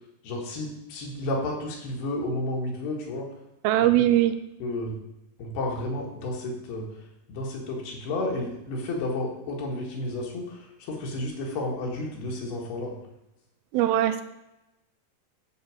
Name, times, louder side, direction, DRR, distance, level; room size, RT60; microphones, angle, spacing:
voice 1, 0.2-3.3 4.0-4.1 4.6-4.9 5.4-6.9 7.3-12.9, left 2 dB, 80° left, -1 dB, 3.7 m, -31 dB
voice 2, 3.6-4.3 13.7-14.2, right 13 dB, 80° right, 11 dB, 2.3 m, -21 dB
11.0 x 4.1 x 7.7 m, 0.91 s
omnidirectional pair, 4.7 m